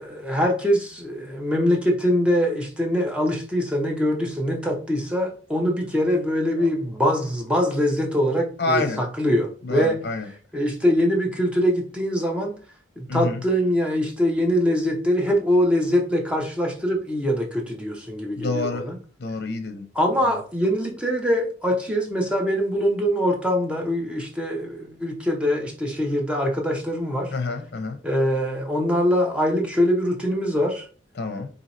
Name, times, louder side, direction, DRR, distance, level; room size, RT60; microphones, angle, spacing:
voice 1, 0.0-10.0 10.5-12.5 13.0-19.0 20.0-27.3 28.0-30.9, equal, 5° right, 0 dB, 0.6 m, -23 dB
voice 2, 8.6-9.0 9.6-10.3 13.1-13.4 18.4-18.9 19.2-19.9 20.3-20.4 27.3-28.0 31.2-31.5, left 3 dB, 55° left, 6 dB, 0.6 m, -27 dB
2.8 x 2.7 x 4.1 m, 0.41 s
head